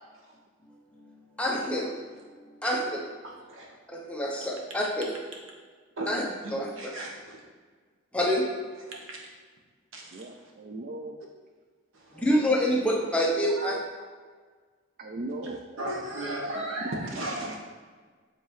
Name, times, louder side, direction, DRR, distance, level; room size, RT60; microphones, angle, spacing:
voice 1, 1.4-1.9 2.6-3.0 3.9-5.1 6.1-6.2 6.5-6.7 8.1-8.4 12.1-13.7, equal, 5° left, -3 dB, 0.7 m, -26 dB
voice 2, 3.2-3.8 6.0-7.4 8.9-9.3 9.9-10.5 11.9-12.7 13.6-13.8 15.8-17.6, right 1 dB, 75° right, -1 dB, 1.1 m, -37 dB
voice 3, 10.1-11.2 14.0-14.1 15.0-15.8 16.4-17.0 17.4-17.6, right 2 dB, 45° right, 3 dB, 0.4 m, -38 dB
7.2 x 4.1 x 3.1 m, 1.5 s
head